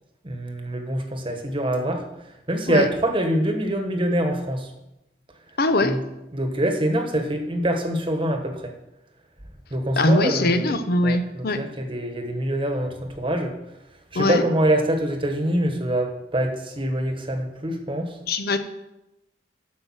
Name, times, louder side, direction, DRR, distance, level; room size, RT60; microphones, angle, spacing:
voice 1, 0.2-2.0 2.5-4.7 5.8-6.0 6.3-8.7 9.7-10.7 11.0-13.5 14.1-18.1, right 1 dB, 30° right, 4 dB, 1.3 m, -25 dB
voice 2, 5.6-6.0 10.0-11.6 14.1-14.4 18.3-18.6, left 2 dB, 55° left, 9 dB, 0.7 m, -21 dB
8.2 x 6.5 x 6.3 m, 0.91 s
head